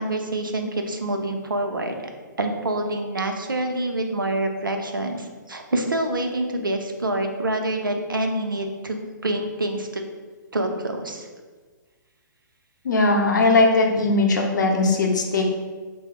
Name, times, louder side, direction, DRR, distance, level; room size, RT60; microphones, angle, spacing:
voice 1, 0.0-2.0 2.4-10.0 10.5-11.3, right 1 dB, 85° right, 4 dB, 0.5 m, -26 dB
voice 2, 12.8-15.4, left 3 dB, 65° left, 1 dB, 0.6 m, -19 dB
4.8 x 2.0 x 2.4 m, 1.4 s
figure-of-eight pair, 125°, 11 cm